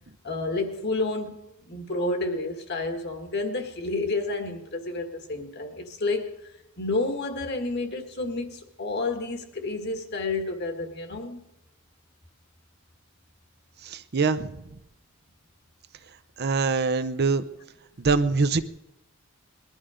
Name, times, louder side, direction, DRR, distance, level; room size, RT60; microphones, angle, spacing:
voice 1, 0.2-6.3 6.8-11.5, left 2 dB, 50° left, 5 dB, 1.8 m, -30 dB
voice 2, 13.8-14.5 16.4-17.4 18.0-18.6, right 4 dB, 50° right, 11 dB, 0.6 m, -24 dB
20.5 x 12.0 x 5.0 m, 0.89 s
head